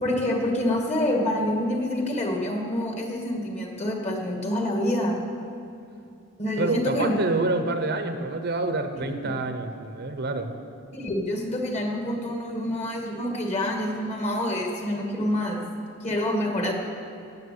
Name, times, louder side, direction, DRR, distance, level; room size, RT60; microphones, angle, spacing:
voice 1, 0.0-5.2 6.4-7.1 7.6-7.7 9.1-9.4 10.9-15.6 16.0-16.7, left 1 dB, 35° left, 1 dB, 2.3 m, -27 dB
voice 2, 6.6-10.5, right 2 dB, 50° right, 8 dB, 1.0 m, -27 dB
17.0 x 7.4 x 8.6 m, 2.6 s
head